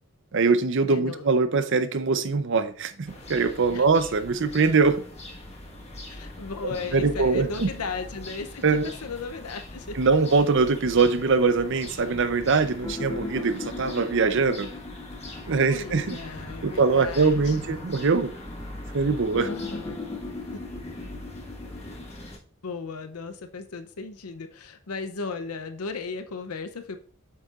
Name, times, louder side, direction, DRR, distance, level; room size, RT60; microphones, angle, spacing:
voice 1, 0.3-5.0 6.9-7.7 8.6-8.9 10.0-14.7 15.5-16.2 16.6-18.3 18.9-19.5, right 4 dB, 60° right, 0.6 m, -22 dB
voice 2, 0.9-1.3 3.7-3.8 6.1-10.0 15.5-17.8 19.4-20.0 22.6-27.0, left 4 dB, 90° left, 0.7 m, -36 dB
sound 1, 3.1-22.4, left 1 dB, 30° left, 1.4 m, -41 dB
sound 2, 6.8-22.0, left 3 dB, 15° left, 0.6 m, -40 dB
7.7 x 6.5 x 2.4 m
head